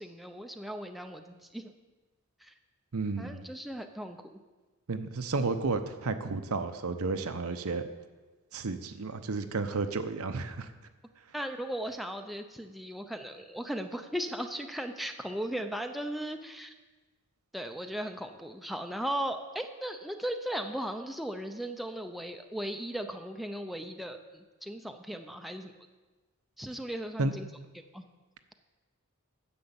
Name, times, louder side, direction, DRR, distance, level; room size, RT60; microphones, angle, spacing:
voice 1, 0.0-1.7 2.4-2.5 3.2-4.4 11.3-16.7 17.5-25.7 26.6-27.5 27.9-28.0, right 1 dB, ahead, 5 dB, 0.6 m, -37 dB
voice 2, 2.9-3.5 4.9-7.8 8.5-10.7 27.2-27.3, right 3 dB, 75° right, 8 dB, 0.8 m, -32 dB
10.0 x 7.7 x 7.1 m, 1.2 s
head